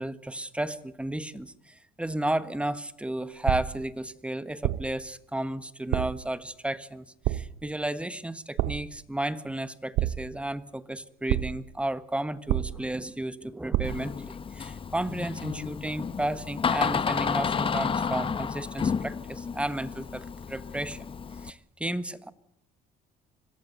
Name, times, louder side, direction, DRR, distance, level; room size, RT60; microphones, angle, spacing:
voice 1, 0.0-21.1 21.4-22.3, right 1 dB, 5° right, 13 dB, 1.4 m, -33 dB
sound 1, 3.5-3.9 4.6-5.0 5.9-6.3 7.2-7.7 8.6-9.0 10.0-10.5 11.3-11.7 12.5-13.0 13.7-14.2, right 14 dB, 80° right, 0.9 m, -29 dB
Door, 13.8-21.5, left 6 dB, 30° left, 1.0 m, -31 dB
25.5 x 18.5 x 8.1 m, 0.79 s
cardioid pair, 110°, 17 cm